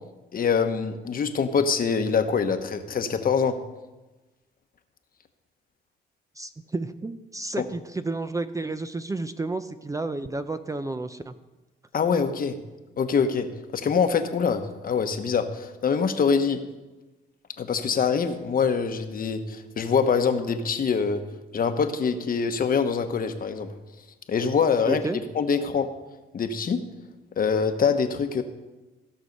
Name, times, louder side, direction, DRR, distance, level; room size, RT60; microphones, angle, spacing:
voice 1, 0.3-3.6 7.6-7.7 11.9-12.6 13.0-13.5 13.7-16.6 17.6-21.2 21.5-23.7 24.3-25.0 25.3-25.9 26.3-26.8 27.4-28.4, left 6 dB, 45° left, 8 dB, 1.1 m, -24 dB
voice 2, 6.4-11.3 24.9-25.2, right 2 dB, 15° right, 10 dB, 0.5 m, -31 dB
16.0 x 6.3 x 5.4 m, 1.1 s
cardioid pair, 90°, 20 cm